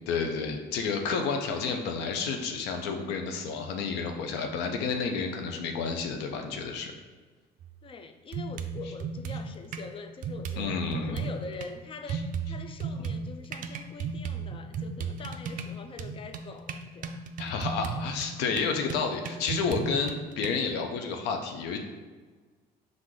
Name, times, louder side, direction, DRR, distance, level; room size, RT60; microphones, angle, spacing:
voice 1, 0.1-6.9 10.6-11.3 12.1-12.2 17.4-21.8, left 5 dB, 90° left, 4 dB, 0.6 m, -30 dB
sound 1, 7.6-7.7 8.3-9.9 10.2-11.7 12.1-20.5, right 5 dB, 55° right, 0.4 m, -35 dB
voice 2, 7.8-17.2, left 4 dB, 30° left, 7 dB, 0.4 m, -44 dB
4.7 x 2.5 x 3.7 m, 1.4 s
cardioid pair, 110°, 17 cm